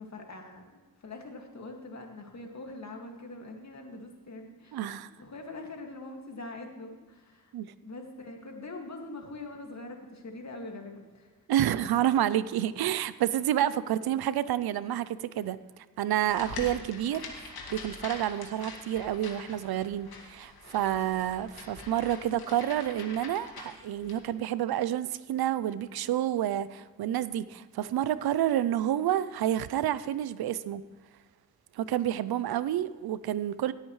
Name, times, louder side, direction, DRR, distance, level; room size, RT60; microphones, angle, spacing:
voice 1, 0.0-7.5 7.8-11.3 11.8-11.9, left 2 dB, 50° left, 2.2 m, -43 dB
voice 2, 4.7-5.1 7.5-7.7 11.5-15.6 16.0-30.8 31.7-33.7, right 11 dB, 85° right, 0.6 m, -29 dB
sound 1, 16.3-24.2, left 3 dB, 80° left, 2.1 m, -44 dB
17.5 x 8.9 x 3.2 m
cardioid pair, 70°, 36 cm